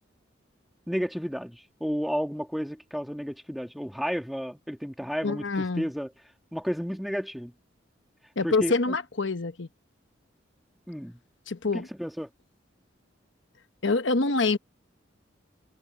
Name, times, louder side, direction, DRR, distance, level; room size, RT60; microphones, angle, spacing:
voice 1, 0.9-6.1 6.5-7.5 8.4-9.0 10.9-11.2 11.7-12.3, equal, ahead, 1.7 m, -32 dB
voice 2, 5.2-5.9 8.4-9.7 11.5-11.9 13.8-14.6, left 3 dB, 75° left, 1.1 m, -26 dB
head